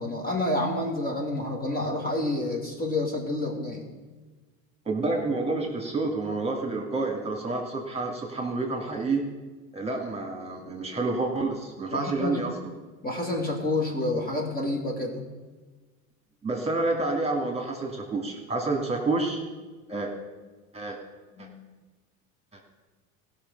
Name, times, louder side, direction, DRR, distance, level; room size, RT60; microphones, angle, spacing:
voice 1, 0.0-3.9 11.9-12.4 13.0-15.2 21.4-21.5, left 2 dB, 20° left, 0 dB, 2.6 m, -29 dB
voice 2, 4.8-9.2 9.7-12.5 16.4-19.4 19.9-20.1 20.7-21.0 21.4-21.5 22.5-22.7, right 3 dB, 15° right, 1 dB, 2.5 m, -29 dB
16.5 x 6.2 x 5.5 m, 1.3 s
hypercardioid pair, 75°, 41 cm